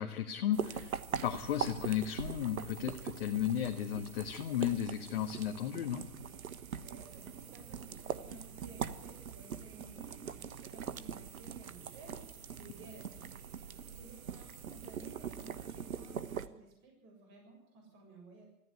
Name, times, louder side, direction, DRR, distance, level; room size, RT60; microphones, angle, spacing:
voice 1, 0.0-6.0, left 10 dB, 40° left, 4 dB, 1.6 m, -34 dB
sound 1, 0.5-16.5, right 7 dB, 65° right, 1.4 m, -42 dB
voice 2, 6.8-18.5, right 2 dB, 25° right, 1 dB, 7.5 m, -56 dB
21.0 x 14.5 x 9.5 m, 0.83 s
hypercardioid pair, 140°, 45 cm